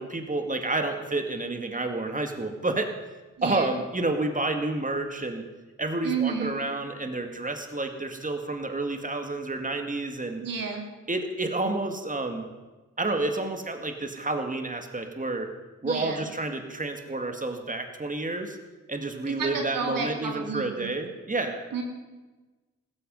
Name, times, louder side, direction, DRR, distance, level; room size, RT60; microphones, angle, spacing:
voice 1, 0.0-2.9 3.4-5.4 5.8-10.4 11.1-12.5 13.0-15.5 15.8-18.6 18.9-21.6, right 2 dB, 25° right, 5 dB, 2.1 m, -30 dB
voice 2, 3.4-3.8 6.0-6.6 10.4-10.9 15.8-16.3 19.3-20.9 21.7-21.8, right 5 dB, 80° right, 2 dB, 2.3 m, -31 dB
15.5 x 13.5 x 5.5 m, 1.2 s
supercardioid pair, 45°, 33 cm